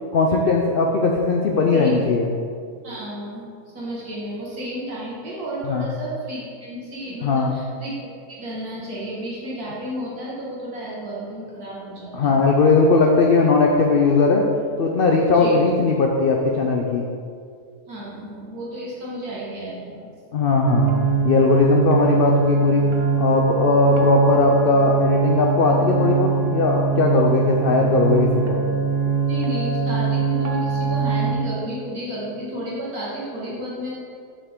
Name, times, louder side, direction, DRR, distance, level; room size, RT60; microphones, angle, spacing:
voice 1, 0.1-2.3 5.7-5.9 7.2-7.6 12.1-14.4 14.8-17.1 20.3-20.9 21.2-22.8 23.2-28.6, left 3 dB, 80° left, 0 dB, 0.5 m, -18 dB
voice 2, 1.7-2.1 2.8-12.4 15.3-15.6 17.9-20.0 29.3-33.9, right 1 dB, 70° right, -7 dB, 2.3 m, -32 dB
sound 1, 20.7-31.3, right 6 dB, 50° right, 0.8 m, -22 dB
6.6 x 5.7 x 3.6 m, 2.2 s
omnidirectional pair, 1.6 m